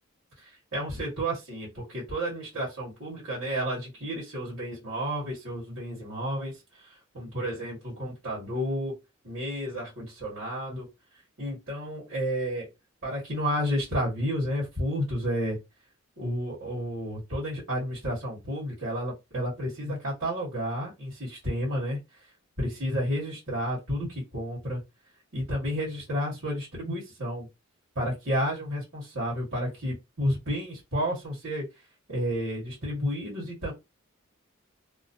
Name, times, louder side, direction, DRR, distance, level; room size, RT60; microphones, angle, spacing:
voice 1, 0.4-9.0 9.2-10.9 11.4-12.7 13.0-15.6 16.2-22.0 22.6-24.8 25.3-27.5 27.9-31.7 32.1-33.7, equal, 80° right, 1.7 m, -31 dB
2.9 x 2.1 x 2.7 m
head